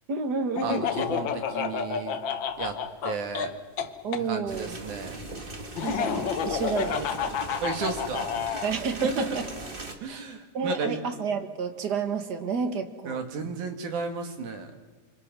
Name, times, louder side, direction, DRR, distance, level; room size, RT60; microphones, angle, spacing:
voice 1, 0.1-0.8 4.0-4.8 5.8-7.4 8.6-9.5 10.1-10.2 10.5-13.2, right 5 dB, 45° right, 7 dB, 1.6 m, -30 dB
Laughter, 0.6-4.2 5.8-8.7, left 7 dB, 60° left, 1.2 m, -30 dB
voice 2, 0.6-2.2 2.6-2.8 3.0-3.5 4.3-5.2 7.6-8.4 9.0-9.4 10.0-11.0 13.1-14.7, right 4 dB, 75° right, 5 dB, 3.6 m, -33 dB
FX Mill stone corn grain Arilje circular mouvement slow, 4.5-9.9, right 2 dB, 25° right, 1.3 m, -39 dB
27.0 x 27.0 x 6.2 m, 1.3 s
omnidirectional pair, 3.5 m